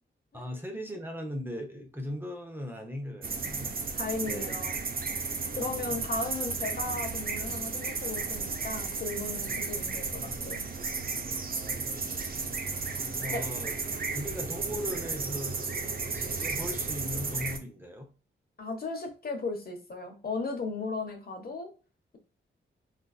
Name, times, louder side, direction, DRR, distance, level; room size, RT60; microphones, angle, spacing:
voice 1, 0.3-3.7 4.2-4.6 5.5-6.0 11.5-12.3 13.2-13.7 14.1-15.6 16.1-18.1, left 1 dB, 10° right, 1 dB, 0.8 m, -39 dB
sound 1, 3.2-17.6, right 4 dB, 45° right, 0.7 m, -34 dB
voice 2, 3.9-4.8 5.6-10.6 13.3-13.5 18.6-21.7, left 3 dB, 50° left, 3 dB, 1.0 m, -36 dB
3.8 x 2.6 x 2.3 m, 0.34 s
cardioid pair, 90°, 21 cm